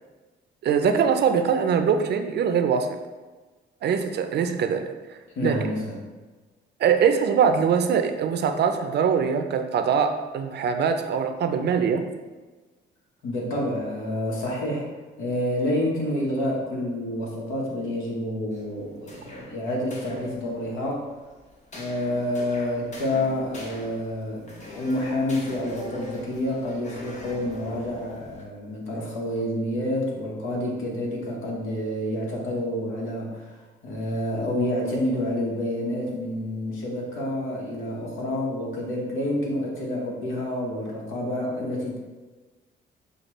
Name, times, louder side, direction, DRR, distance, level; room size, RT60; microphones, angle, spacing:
voice 1, 0.6-2.9 3.8-4.8 5.4-5.6 6.8-12.0, right 7 dB, 60° right, 6 dB, 0.5 m, -22 dB
voice 2, 5.3-6.0 13.2-14.9 15.2-21.1 21.7-33.6 33.8-42.0, left 1 dB, 85° left, -2 dB, 1.1 m, -28 dB
sound 1, 18.5-28.4, left 2 dB, 35° left, 0.9 m, -43 dB
6.5 x 2.3 x 3.1 m, 1.3 s
cardioid pair, 90°, 20 cm